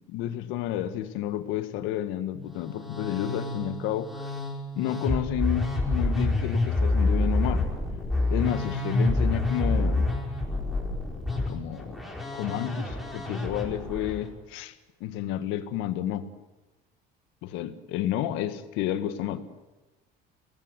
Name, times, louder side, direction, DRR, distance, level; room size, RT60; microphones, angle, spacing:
voice 1, 0.1-4.3 4.7-7.7 8.3-10.1 11.5-11.9 12.3-14.7 15.0-16.3 17.4-19.5, left 12 dB, 85° left, 11 dB, 1.7 m, -31 dB
Musical instrument, 2.4-14.2, left 2 dB, ahead, 5.1 m, -28 dB
24.0 x 17.5 x 8.1 m, 1.1 s
cardioid pair, 130°, 20 cm